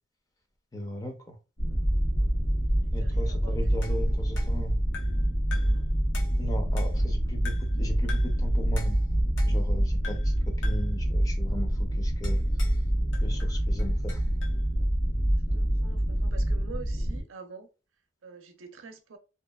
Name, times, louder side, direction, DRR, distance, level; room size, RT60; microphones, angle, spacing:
voice 1, 0.7-1.4 2.9-4.8 6.4-9.0 9.4-12.4 13.2-14.2, equal, 20° left, 0.5 m, -38 dB
sound 1, 1.6-17.2, equal, 90° left, 1.3 m, -26 dB
voice 2, 3.0-4.2 5.6-5.8 15.5-17.7 18.2-19.2, right 4 dB, 90° right, 0.5 m, -46 dB
sound 2, 3.8-5.3 5.5-5.8 6.1-7.1 7.4-7.8 8.1-8.4 8.8-9.8 10.0-10.4 10.6-10.9 12.2-12.8 13.1-14.6, left 5 dB, 70° left, 0.7 m, -44 dB
2.8 x 2.2 x 2.2 m
head